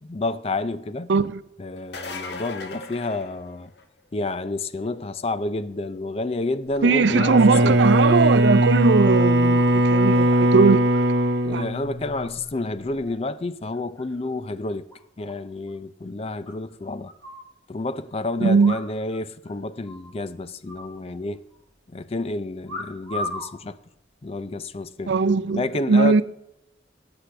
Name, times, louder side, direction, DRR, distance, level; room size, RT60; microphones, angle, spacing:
voice 1, 0.0-1.1 1.6-3.7 4.1-7.8 11.4-14.8 15.2-17.1 17.7-21.4 21.9-23.8 24.2-25.1 25.5-26.2, left 2 dB, 35° left, 0.5 m, -29 dB
voice 2, 1.1-1.4 6.8-10.8 11.5-11.7 18.4-18.8 25.1-26.2, right 4 dB, 85° right, 0.5 m, -19 dB
sound 1, 1.8-4.0 9.5-9.6 11.4-11.5, left 3 dB, 70° left, 1.1 m, -37 dB
Bowed string instrument, 7.0-12.4, right 1 dB, 70° right, 0.9 m, -19 dB
sound 2, 7.1-7.6 8.0-10.0 10.3-11.3 12.1-12.6 12.9-13.3 13.7-14.3 14.6-14.7 14.9-15.0 15.3-15.4 15.7-15.8 16.4-17.5 18.6-19.2 19.4-19.5 19.8-20.2 20.7-21.6 22.6-23.5 24.3-24.6, left 1 dB, 15° left, 4.6 m, -38 dB
17.5 x 8.0 x 3.3 m
head